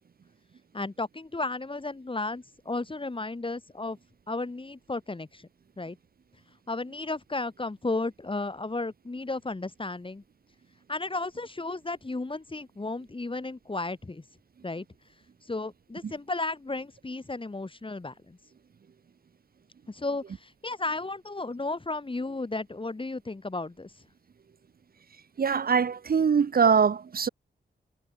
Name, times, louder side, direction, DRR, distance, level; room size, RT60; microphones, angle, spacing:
voice 1, 0.7-4.0 4.3-5.5 5.8-6.0 6.7-10.2 10.9-14.2 14.6-14.9 15.4-18.4 19.9-23.9, left 2 dB, 30° left, 4.3 m, -34 dB
voice 2, 25.4-27.3, right 6 dB, 55° right, 0.9 m, -23 dB
cardioid pair, 80°, 18 cm